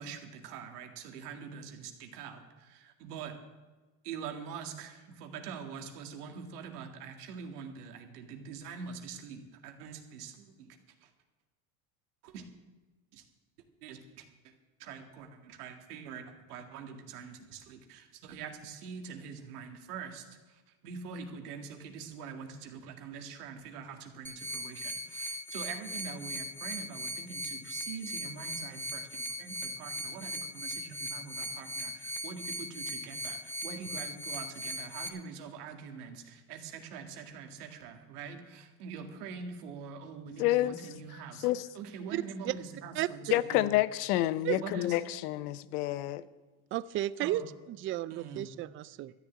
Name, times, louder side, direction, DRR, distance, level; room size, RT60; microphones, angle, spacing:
voice 1, 0.0-3.4 4.0-11.1 12.2-12.5 13.1-13.3 13.8-14.5 14.8-41.5 41.7-43.7 44.6-45.0 47.2-47.5 48.1-48.5, right 6 dB, 85° right, 2.1 m, -44 dB
sound 1, 24.2-35.1, equal, 5° left, 1.0 m, -39 dB
voice 2, 40.4-40.7 41.4-41.6 43.3-46.2, left 15 dB, 80° left, 0.8 m, -28 dB
voice 3, 42.1-42.5 43.0-43.1 44.4-44.6 46.7-47.4 47.7-49.1, right 14 dB, 30° right, 0.4 m, -33 dB
13.0 x 7.2 x 9.3 m
supercardioid pair, 115°, 44 cm